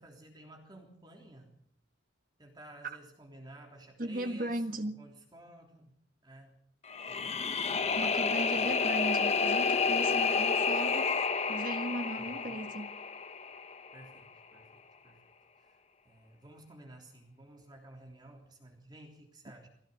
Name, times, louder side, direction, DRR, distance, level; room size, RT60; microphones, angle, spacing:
voice 1, 0.0-1.6 2.4-5.9 6.2-6.6 7.1-7.5 8.5-8.9 12.2-12.6 13.9-15.2 15.6-19.7, right 1 dB, 20° right, 3.4 m, -54 dB
voice 2, 4.0-5.0 8.0-11.1 11.5-13.0, right 1 dB, 45° right, 1.8 m, -37 dB
sound 1, 6.9-14.0, left 5 dB, 35° left, 0.9 m, -30 dB
21.5 x 17.0 x 8.3 m
head